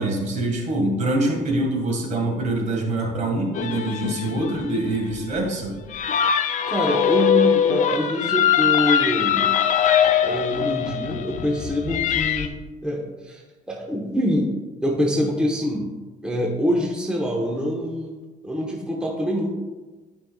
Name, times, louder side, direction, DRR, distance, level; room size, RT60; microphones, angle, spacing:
voice 1, 0.0-5.8, right 2 dB, 45° right, 1 dB, 1.8 m, -24 dB
sound 1, 3.5-12.5, left 9 dB, 45° left, 0.6 m, -22 dB
voice 2, 6.7-9.5 10.2-12.5 12.8-14.5 14.8-15.9 16.2-18.2 18.4-19.5, equal, 5° right, -1 dB, 1.1 m, -25 dB
12.0 x 5.5 x 2.4 m, 1.2 s
cardioid pair, 110°, 17 cm